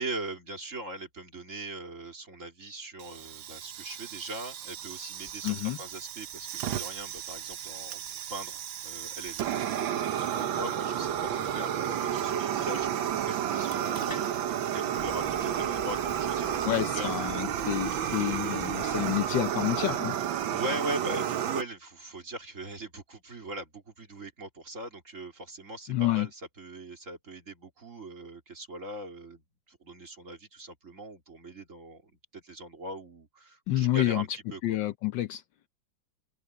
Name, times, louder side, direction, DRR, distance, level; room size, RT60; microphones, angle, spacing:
voice 1, 0.0-8.0 8.3-17.1 20.5-29.4 29.7-34.6, right 2 dB, 35° right, 3.2 m, -40 dB
Fire, 3.0-21.6, right 10 dB, 75° right, 1.7 m, -32 dB
sound 1, 5.2-18.2, left 1 dB, 10° left, 5.0 m, -55 dB
voice 2, 5.4-5.8 16.6-20.2 25.9-26.3 33.7-34.2 34.6-35.4, left 14 dB, 70° left, 1.3 m, -29 dB
sound 2, 15.0-20.6, left 3 dB, 35° left, 2.1 m, -49 dB
omnidirectional pair, 2.2 m